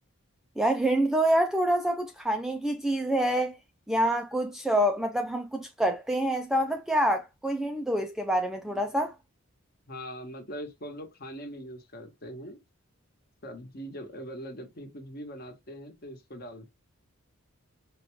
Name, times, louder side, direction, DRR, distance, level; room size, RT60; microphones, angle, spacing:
voice 1, 0.6-3.6 3.9-9.1, right 1 dB, ahead, 0.3 m, -26 dB
voice 2, 9.9-12.6 13.4-16.7, equal, 45° left, 1.1 m, -41 dB
5.0 x 2.3 x 3.0 m
head